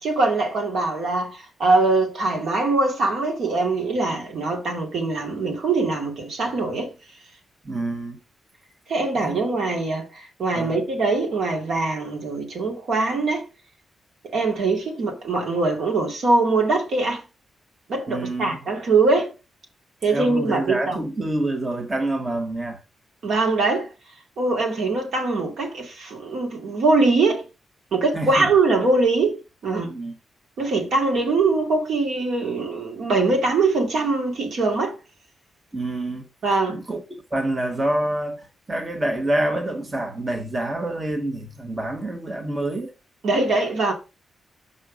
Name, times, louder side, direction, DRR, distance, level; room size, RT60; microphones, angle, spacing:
voice 1, 0.0-6.9 8.9-13.5 14.3-17.2 17.9-19.3 20.0-21.0 23.2-23.9 24.4-27.4 27.9-29.9 30.6-34.9 36.4-36.8 43.2-43.9, right 3 dB, 70° right, 2.4 m, -22 dB
voice 2, 7.6-8.2 9.2-9.4 10.5-10.8 18.1-18.6 20.1-22.8 28.1-28.5 29.8-30.2 35.7-36.2 36.7-37.0 37.3-42.9, right 1 dB, 30° right, 1.4 m, -27 dB
5.6 x 5.4 x 5.1 m
cardioid pair, 95°, 0 cm